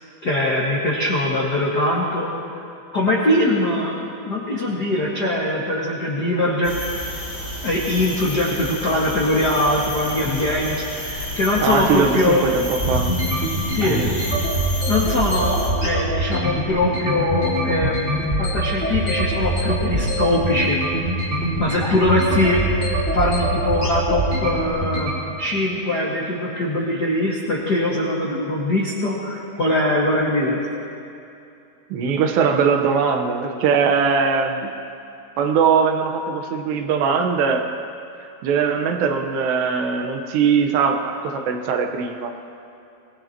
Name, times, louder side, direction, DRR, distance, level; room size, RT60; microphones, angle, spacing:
voice 1, 0.2-2.6 2.9-3.9 4.2-6.8 7.6-12.5 13.7-14.0 14.9-20.8 21.6-25.1 25.4-30.7, left 1 dB, 85° left, -5 dB, 0.9 m, -22 dB
sound 1, 6.6-15.7, left 1 dB, 15° left, 3.1 m, -31 dB
sound 2, 9.9-25.1, right 1 dB, 15° right, 3.4 m, -23 dB
voice 2, 11.6-13.2 13.9-14.1 31.9-34.7 35.4-37.7 38.1-42.3, right 6 dB, 75° right, 4 dB, 3.1 m, -21 dB
24.5 x 19.5 x 3.0 m, 2.6 s
omnidirectional pair, 5.0 m